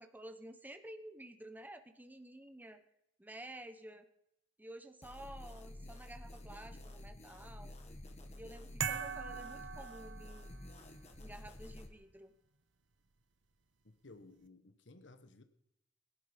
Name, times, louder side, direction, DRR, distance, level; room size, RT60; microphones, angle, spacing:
voice 1, 0.0-2.8 3.2-4.1 4.6-7.8 8.3-10.6 11.2-12.3, right 1 dB, 10° right, 1.1 m, -51 dB
sound 1, 5.0-11.9, left 1 dB, 35° left, 2.1 m, -50 dB
sound 2, 8.8-10.7, right 7 dB, 90° right, 1.0 m, -40 dB
voice 2, 13.8-15.4, left 2 dB, 75° left, 1.3 m, -57 dB
21.0 x 11.5 x 5.3 m
head